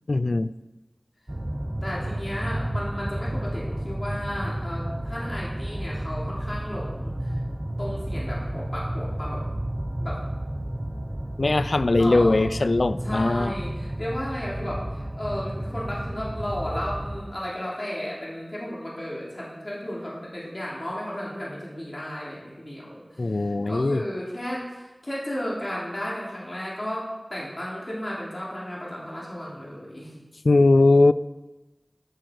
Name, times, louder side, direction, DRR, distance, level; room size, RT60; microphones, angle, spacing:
voice 1, 0.1-0.5 11.4-13.5 23.2-24.0 30.4-31.1, left 2 dB, 80° left, 15 dB, 0.3 m, -20 dB
sound 1, 1.3-17.2, right 1 dB, 25° right, 1.0 m, -31 dB
voice 2, 1.8-7.4 7.8-9.4 10.0-10.2 12.0-12.4 13.0-30.1, equal, 40° left, -6 dB, 3.1 m, -34 dB
13.0 x 6.7 x 4.6 m, 1.1 s
wide cardioid pair, 50°, 0 cm